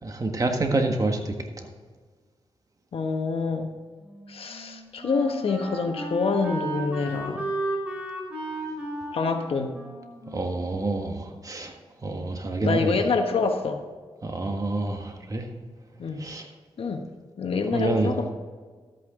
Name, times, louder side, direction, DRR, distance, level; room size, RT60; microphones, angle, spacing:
voice 1, 0.0-1.7 10.3-13.0 14.2-15.5 16.2-16.5 17.7-18.1, right 2 dB, 35° right, 4 dB, 1.6 m, -28 dB
voice 2, 2.9-3.7 4.3-7.5 9.1-9.8 12.6-13.8 16.0-16.3 16.8-17.0 17.4-18.3, left 4 dB, 70° left, 5 dB, 1.2 m, -26 dB
Wind instrument woodwind instrument, 4.0-11.3, right 2 dB, 15° right, 3.2 m, -35 dB
13.0 x 8.6 x 3.8 m, 1.5 s
cardioid pair, 95°, 10 cm